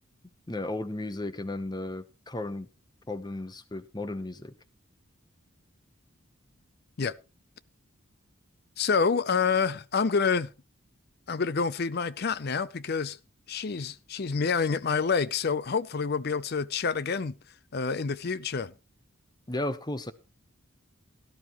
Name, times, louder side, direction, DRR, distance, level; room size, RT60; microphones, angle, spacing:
voice 1, 0.5-2.7 3.1-4.5 14.6-14.7 19.5-20.1, left 1 dB, 20° left, 0.8 m, -34 dB
voice 2, 8.8-10.5 11.3-13.2 13.5-17.4 17.7-18.7, left 5 dB, 50° left, 0.5 m, -27 dB
17.0 x 11.5 x 3.0 m
head